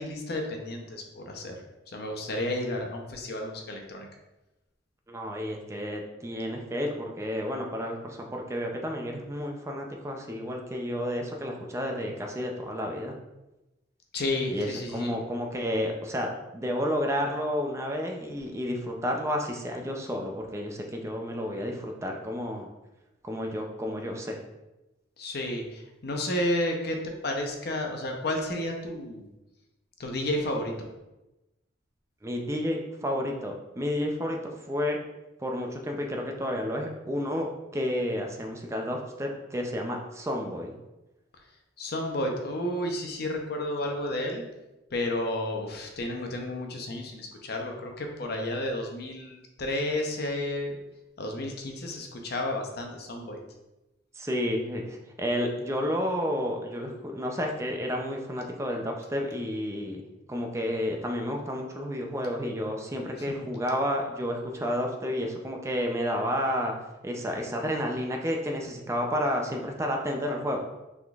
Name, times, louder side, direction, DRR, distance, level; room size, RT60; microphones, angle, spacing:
voice 1, 0.0-1.6 1.9-4.1 14.1-15.1 25.2-29.2 30.0-30.9 41.8-44.4 44.9-50.8 51.2-53.4 63.3-63.4, left 1 dB, 55° left, 2 dB, 0.7 m, -31 dB
voice 2, 5.1-13.1 14.5-22.7 23.2-24.4 32.2-34.4 34.7-35.0 35.4-40.7 54.1-60.0 60.3-66.8 67.0-70.6, equal, 15° right, 1 dB, 0.4 m, -31 dB
5.9 x 3.7 x 2.4 m, 1.0 s
head